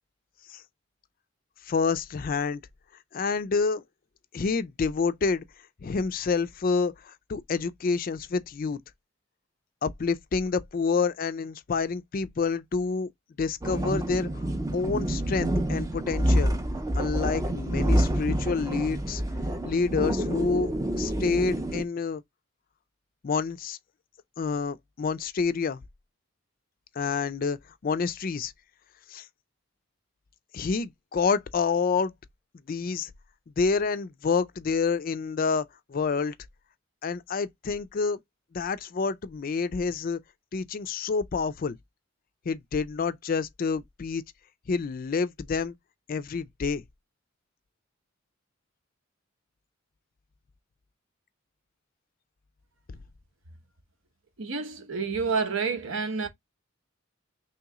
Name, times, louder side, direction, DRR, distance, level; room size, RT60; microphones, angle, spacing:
voice 1, 1.6-2.6 3.1-3.8 4.3-5.4 5.8-8.8 9.8-13.1 13.4-16.5 16.9-19.2 19.6-20.7 21.0-22.2 23.2-23.8 24.4-25.8 27.0-28.5 29.1-29.3 30.5-32.1 32.7-33.1 33.6-36.3 37.0-38.2 38.5-40.2 40.5-41.8 42.5-44.2 44.7-45.7 46.1-46.8 52.9-53.0, left 5 dB, 45° left, 0.4 m, -28 dB
sound 1, 13.6-21.8, right 1 dB, 15° right, 0.5 m, -27 dB
voice 2, 54.4-56.3, right 5 dB, 75° right, 0.8 m, -29 dB
3.1 x 3.0 x 3.5 m
head